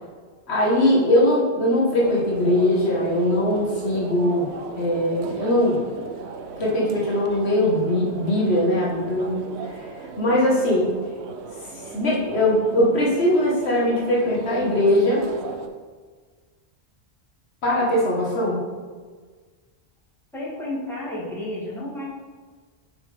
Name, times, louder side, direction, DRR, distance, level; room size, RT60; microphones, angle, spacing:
voice 1, 0.5-4.5 4.7-5.8 6.6-10.9 11.9-15.2 17.6-18.6, left 1 dB, 75° left, -5 dB, 1.6 m, -21 dB
sound 1, 2.0-15.7, right 4 dB, 80° right, 0.9 m, -37 dB
voice 2, 20.3-22.1, left 1 dB, ahead, -9 dB, 2.0 m, -31 dB
7.3 x 5.0 x 3.3 m, 1.5 s
omnidirectional pair, 1.1 m